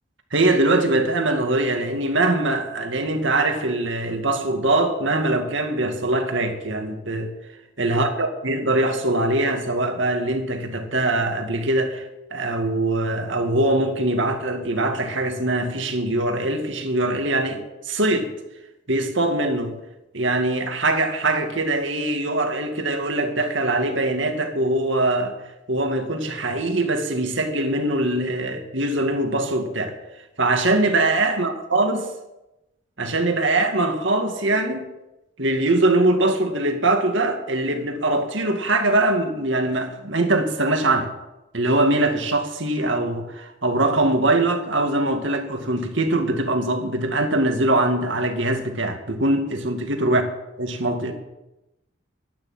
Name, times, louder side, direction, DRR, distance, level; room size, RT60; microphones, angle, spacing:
voice 1, 0.3-7.3 7.8-12.0 12.3-18.3 18.9-19.7 20.1-25.4 25.7-29.9 30.4-32.1 33.0-34.9 35.4-41.1 41.5-50.2 50.6-51.1, right 2 dB, 70° right, 5 dB, 2.3 m, -22 dB
12.0 x 12.0 x 8.9 m, 0.96 s
head